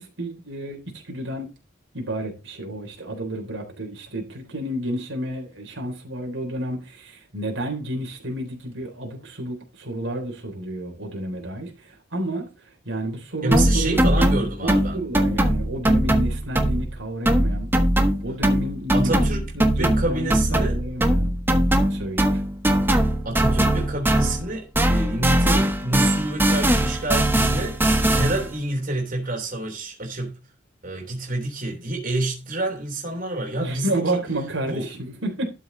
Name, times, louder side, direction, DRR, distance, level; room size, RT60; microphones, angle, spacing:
voice 1, 0.0-1.5 1.9-14.2 14.6-17.7 18.2-21.3 21.9-22.4 33.6-35.5, right 1 dB, 80° right, 3.7 m, -31 dB
voice 2, 13.4-15.0 18.9-19.5 19.8-20.8 23.2-30.3 30.8-33.9 34.7-34.8, right 2 dB, 45° right, 3.3 m, -28 dB
sound 1, 13.5-17.0 17.2-24.5 24.7-28.5, right 1 dB, 10° right, 1.3 m, -21 dB
12.5 x 6.0 x 4.0 m
head